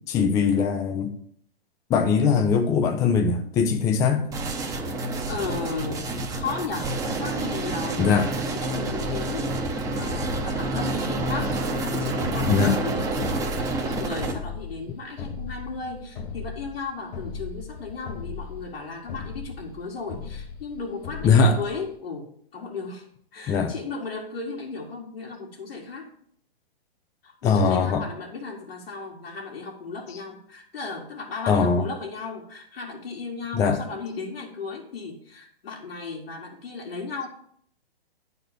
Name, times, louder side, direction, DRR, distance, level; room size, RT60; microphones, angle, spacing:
voice 1, 0.1-1.2 1.9-4.3 8.0-8.3 12.5-12.8 21.2-21.6 23.5-23.7 27.4-28.0 31.5-31.8 33.5-33.8, left 5 dB, 10° left, 0.4 m, -21 dB
sound 1, 4.3-14.3, right 2 dB, 10° right, 0.9 m, -28 dB
voice 2, 5.3-6.1 6.3-26.1 27.2-37.3, left 4 dB, 70° left, 2.0 m, -35 dB
sound 2, 8.9-22.0, left 5 dB, 35° left, 0.9 m, -38 dB
9.7 x 4.3 x 6.7 m
hypercardioid pair, 130°, 30 cm